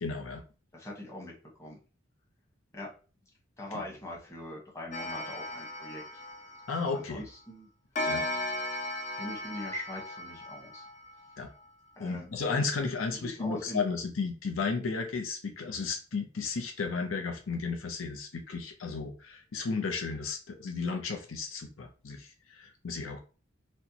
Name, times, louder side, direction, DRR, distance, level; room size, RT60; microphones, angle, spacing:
voice 1, 0.0-0.4 6.7-7.2 8.1-8.3 11.4-11.5 12.0-23.2, left 4 dB, 80° left, 4 dB, 0.6 m, -34 dB
voice 2, 0.7-1.3 1.6-1.8 2.7-2.9 3.6-6.2 6.9-7.7 9.1-10.9 12.0-12.3 13.1-13.8, left 1 dB, 15° left, -3 dB, 1.1 m, -42 dB
Clock, 4.9-7.2 8.0-11.3, left 1 dB, 35° left, 0.5 m, -36 dB
4.2 x 2.2 x 2.8 m, 0.35 s
head